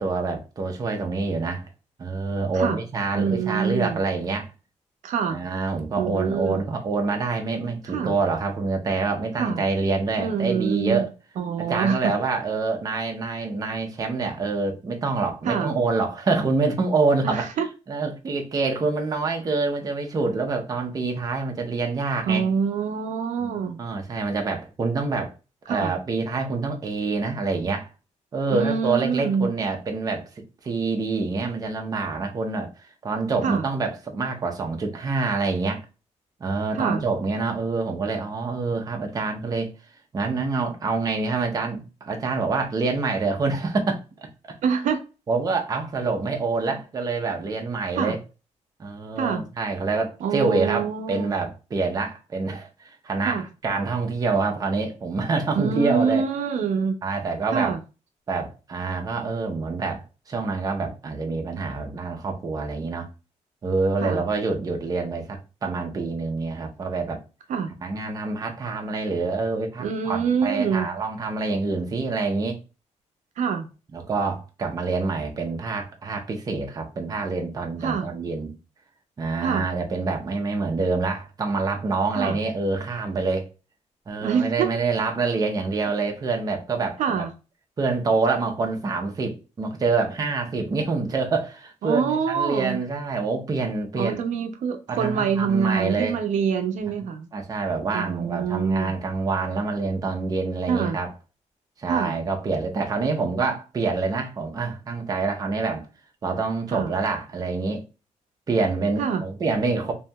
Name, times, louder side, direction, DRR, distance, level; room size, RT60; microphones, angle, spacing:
voice 1, 0.0-1.6 2.0-4.5 5.3-11.1 11.7-17.5 17.9-22.5 23.4-25.3 25.7-27.9 28.3-35.8 36.4-39.7 40.1-44.6 45.3-48.2 48.8-56.2 57.0-57.8 58.3-63.1 63.6-67.2 67.8-72.6 73.9-78.5 79.2-83.5 84.1-87.3 87.8-94.2 94.9-96.2 97.3-101.1 101.8-105.9 106.2-107.8 108.5-109.9, right 3 dB, 30° right, 0.5 m, -26 dB
voice 2, 3.1-4.0 5.0-5.4 6.0-6.6 7.9-8.1 9.4-9.6 10.2-11.1 11.4-12.1 15.4-15.7 17.2-17.7 22.3-23.8 25.7-25.9 28.5-29.6 33.4-33.7 36.7-37.0 44.6-45.0 48.0-48.2 49.2-49.4 50.2-51.3 53.2-53.4 55.5-56.9 57.5-57.8 64.0-64.2 67.5-67.7 69.8-70.9 73.4-73.7 77.8-78.1 79.4-79.7 82.1-82.4 84.2-84.7 87.0-87.3 91.8-92.8 94.0-97.3 97.9-98.9 100.7-101.0 101.9-102.1 106.7-106.9 109.0-109.2, right 6 dB, 80° right, 0.4 m, -25 dB
2.8 x 2.6 x 2.2 m
wide cardioid pair, 150°, 12 cm